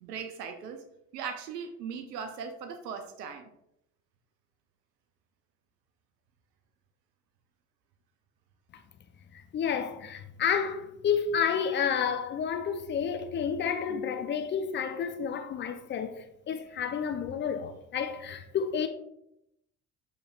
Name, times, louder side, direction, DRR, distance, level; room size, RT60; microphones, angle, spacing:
voice 1, 0.0-0.9 1.1-3.5, right 6 dB, 80° right, 0.5 m, -39 dB
voice 2, 9.3-18.9, left 7 dB, 25° left, 0.3 m, -30 dB
6.4 x 3.1 x 2.3 m
figure-of-eight pair, 55°, 47 cm